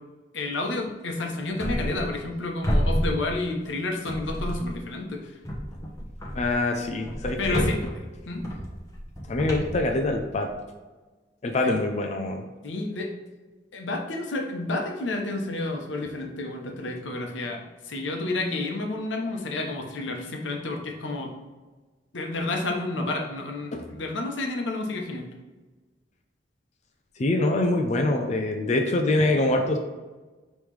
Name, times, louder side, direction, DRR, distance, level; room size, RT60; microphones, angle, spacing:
voice 1, 0.3-5.3 7.4-7.7 8.3-8.5 11.6-11.7 12.6-13.1 13.7-17.6 17.8-21.3 22.1-25.3, left 2 dB, 90° left, 1 dB, 0.8 m, -30 dB
sound 1, 1.6-2.4 2.6-3.7 4.1-4.9 5.4-10.5, equal, 20° left, 0.9 m, -30 dB
voice 2, 6.3-7.7 9.3-10.5 11.4-12.4 23.7-23.8 27.2-29.8, left 2 dB, 40° left, 3 dB, 0.4 m, -24 dB
5.3 x 3.1 x 3.2 m, 1.3 s
head